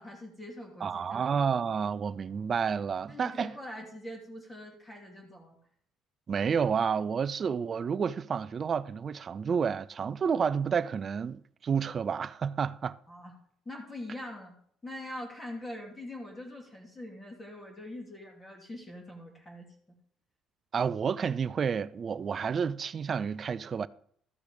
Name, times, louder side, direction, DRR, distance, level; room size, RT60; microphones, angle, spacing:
voice 1, 0.0-1.3 3.1-5.6 13.1-13.3 13.6-14.5 14.8-20.0, left 1 dB, 20° left, 3.0 m, -43 dB
voice 2, 0.8-3.5 6.3-13.0 20.7-23.9, right 6 dB, 40° right, 0.5 m, -30 dB
13.5 x 6.2 x 5.2 m
cardioid pair, 105°, 0 cm